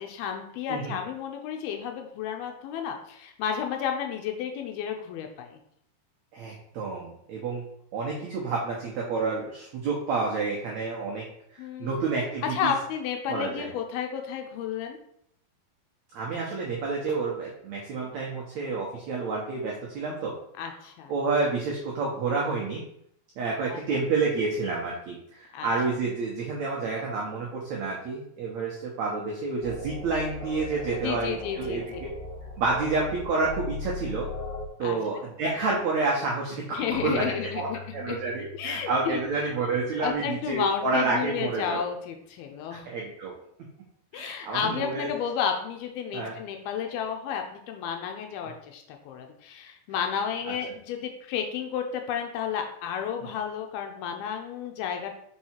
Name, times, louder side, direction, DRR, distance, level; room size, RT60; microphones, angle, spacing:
voice 1, 0.0-5.6 11.6-12.0 12.5-15.0 20.6-21.1 23.7-23.8 25.5-25.7 31.0-31.8 34.8-35.0 36.7-38.2 38.5-39.2 40.0-42.9 44.1-55.1, left 8 dB, 80° left, 3 dB, 2.4 m, -32 dB
voice 2, 6.3-7.6 7.9-11.2 11.5-12.7 13.3-13.7 16.1-20.3 21.1-22.8 23.4-31.9 32.6-34.3 34.8-37.2 37.5-41.9 42.9-43.3 44.1-45.1 46.1-46.3, right 3 dB, 85° right, -2 dB, 1.6 m, -29 dB
sound 1, 29.6-34.7, left 2 dB, 60° left, 2.3 m, -37 dB
Keyboard (musical), 36.9-41.4, left 3 dB, 45° left, 1.1 m, -46 dB
5.5 x 4.7 x 4.4 m, 0.70 s
omnidirectional pair, 4.7 m